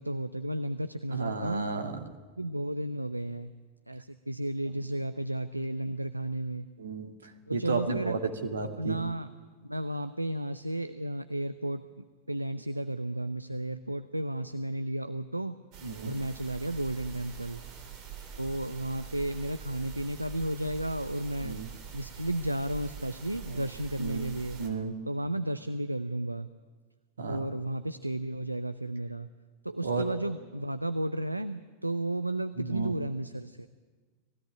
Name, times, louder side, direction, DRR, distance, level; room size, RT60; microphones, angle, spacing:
voice 1, 0.0-1.7 2.4-3.5 3.9-6.7 7.5-8.2 8.8-9.3 9.6-11.8 12.3-15.5 16.0-17.6 18.3-21.6 21.9-24.6 25.0-26.5 27.2-29.3 29.6-33.7, right 1 dB, 85° right, 11 dB, 0.6 m, -33 dB
voice 2, 1.1-2.0 6.8-7.1 7.5-9.0 15.8-16.1 21.4-21.7 23.5-23.6 24.0-24.2 24.6-24.9 27.2-27.5 29.8-30.1 32.6-32.9, right 4 dB, 70° right, 5 dB, 2.2 m, -33 dB
sound 1, 15.7-24.7, right 7 dB, 40° right, 3.3 m, -45 dB
19.5 x 16.0 x 10.0 m, 1.4 s
figure-of-eight pair, 90°, 0 cm